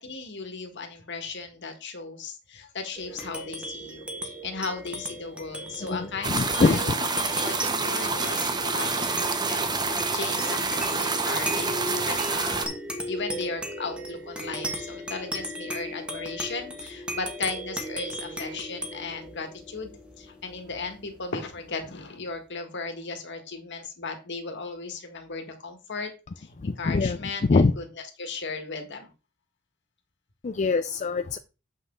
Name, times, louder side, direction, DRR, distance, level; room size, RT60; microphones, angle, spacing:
voice 1, 0.0-7.1 7.4-12.7 13.1-26.1 26.4-27.8 28.2-29.1, left 4 dB, 55° left, 5 dB, 1.7 m, -36 dB
sound 1, 3.0-21.8, equal, 5° right, 1.5 m, -36 dB
voice 2, 5.8-6.8 26.6-27.7 30.4-31.4, left 3 dB, 35° left, 9 dB, 0.4 m, -24 dB
sound 2, 6.2-12.6, right 4 dB, 20° right, 0.9 m, -27 dB
7.5 x 6.0 x 3.8 m, 0.32 s
head